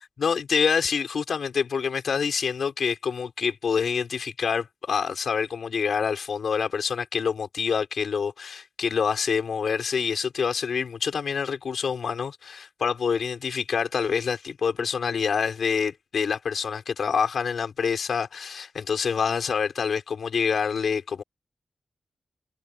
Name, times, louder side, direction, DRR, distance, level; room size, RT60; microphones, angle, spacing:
voice 1, 0.2-21.2, left 6 dB, 80° left, 6.1 m, -26 dB
wide cardioid pair, 130°, 0 cm